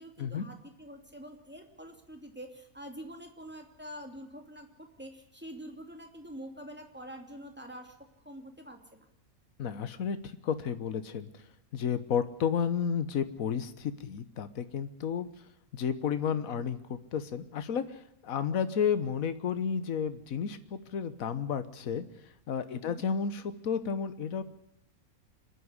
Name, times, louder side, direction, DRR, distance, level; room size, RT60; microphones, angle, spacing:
voice 1, 0.0-8.0 8.2-9.1 22.7-23.0, equal, 5° right, 4 dB, 2.8 m, -46 dB
voice 2, 9.6-11.3 11.7-15.3 15.7-22.0 22.5-24.4, left 7 dB, 70° left, 11 dB, 1.5 m, -32 dB
25.5 x 11.0 x 9.7 m, 0.83 s
omnidirectional pair, 1.5 m